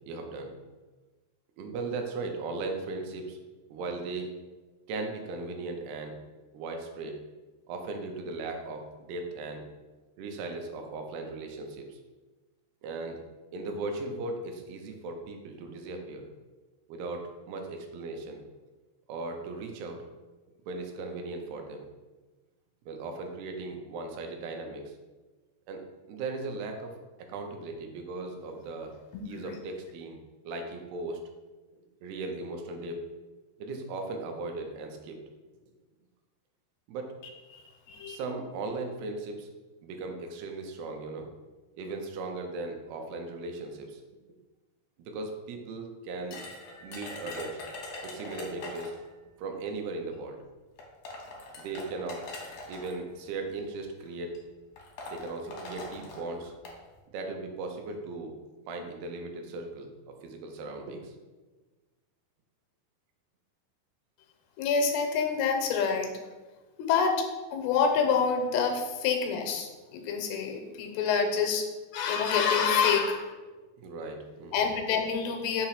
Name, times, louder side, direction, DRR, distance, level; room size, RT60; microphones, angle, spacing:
voice 1, 0.1-0.5 1.6-3.4 3.7-4.3 4.9-6.2 6.5-7.2 7.7-9.7 10.2-12.0 12.8-13.2 13.5-16.3 16.9-18.4 19.1-20.0 20.7-21.8 22.9-24.9 25.7-25.8 26.1-28.9 29.2-30.2 30.5-31.2 32.0-33.0 33.6-35.2 36.9-37.1 38.1-39.5 39.8-41.3 41.8-44.0 45.0-46.4 46.8-47.6 48.0-49.0 49.4-50.4 51.6-52.2 52.7-54.4 55.1-56.5 57.1-58.3 58.7-61.1 73.8-74.7, right 3 dB, 80° right, 3 dB, 2.7 m, -37 dB
sound 1, 46.3-49.1 50.1-50.2 50.8-52.9 53.8-54.1 54.3-54.4 54.8-56.8, left 2 dB, 75° left, 1.6 m, -42 dB
voice 2, 64.6-66.1 66.8-71.6 71.9-73.3 74.5-75.7, left 6 dB, 90° left, 4 dB, 2.8 m, -27 dB
6.6 x 3.0 x 5.7 m, 1.2 s
omnidirectional pair, 4.8 m